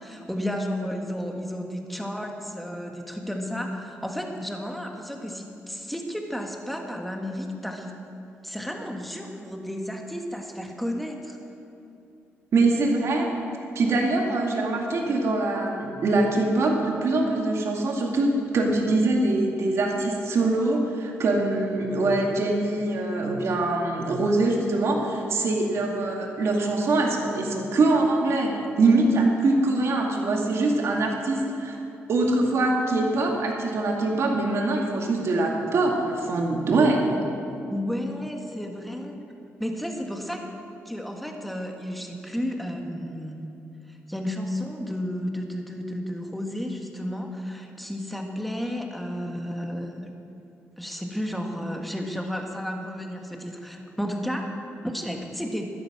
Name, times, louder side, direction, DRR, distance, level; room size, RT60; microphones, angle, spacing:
voice 1, 0.0-8.0 8.4-11.4 25.8-25.9 37.7-39.1 39.6-40.4 40.8-43.6 44.1-50.1 50.8-55.7, equal, ahead, 2 dB, 1.6 m, -32 dB
voice 2, 12.5-13.3 13.8-28.5 28.8-31.8 32.1-37.1, right 2 dB, 65° right, 0 dB, 2.2 m, -23 dB
13.0 x 10.5 x 6.1 m, 2.7 s
cardioid pair, 90°, 5 cm